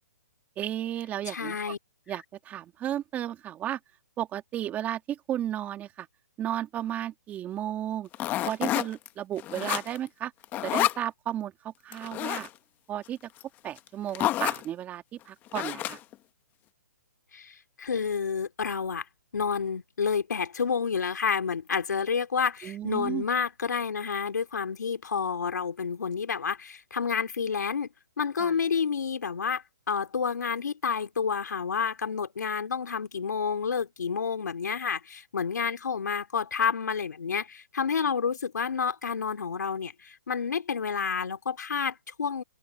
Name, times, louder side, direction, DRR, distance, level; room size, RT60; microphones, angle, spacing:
voice 1, 0.6-1.7 2.1-3.8 4.2-6.1 6.4-8.1 8.5-10.3 10.6-12.5 12.9-13.2 13.6-16.0 22.6-23.2 28.4-28.5, right 11 dB, 15° right, 2.2 m, -33 dB
voice 2, 1.3-1.8 2.1-2.2 17.3-19.0 19.3-27.9 28.2-42.4, left 6 dB, 80° left, 2.8 m, -29 dB
sound 1, 8.1-9.1 9.4-10.1 10.4-11.0 11.9-12.5 13.4-13.5 13.8-13.9 14.1-14.7 15.5-16.1, left 14 dB, 20° left, 1.1 m, -29 dB
open air
hypercardioid pair, 150°, 9 cm